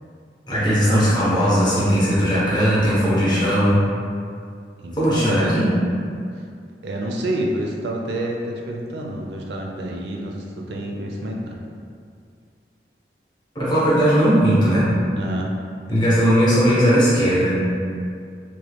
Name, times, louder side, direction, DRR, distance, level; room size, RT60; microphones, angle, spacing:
voice 1, 0.5-3.8 5.0-5.7 13.5-14.9 15.9-17.6, equal, 25° left, -9 dB, 0.8 m, -18 dB
voice 2, 4.8-5.6 6.3-6.4 6.8-11.6 15.2-15.5, right 1 dB, 75° right, 0 dB, 0.4 m, -28 dB
3.0 x 2.1 x 3.2 m, 2.3 s
head